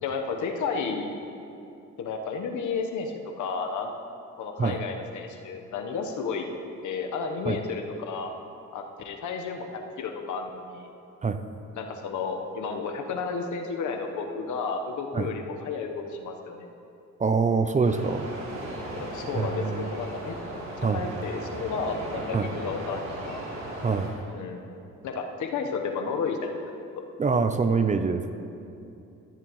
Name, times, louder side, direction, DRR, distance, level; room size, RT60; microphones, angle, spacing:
voice 1, 0.0-1.1 2.0-3.9 4.4-6.5 6.8-8.3 8.7-10.9 11.7-16.7 19.0-20.4 20.8-23.0 23.3-23.4 24.3-24.6 25.0-26.6, left 5 dB, 75° left, 4 dB, 1.1 m, -32 dB
voice 2, 17.2-18.3 19.3-19.9 20.8-21.1 22.3-22.5 23.8-24.1 27.2-28.3, right 4 dB, 25° right, 9 dB, 0.5 m, -25 dB
sound 1, 17.8-24.1, right 1 dB, 65° right, 2.7 m, -37 dB
13.5 x 10.0 x 3.1 m, 2.7 s
cardioid pair, 90°, 30 cm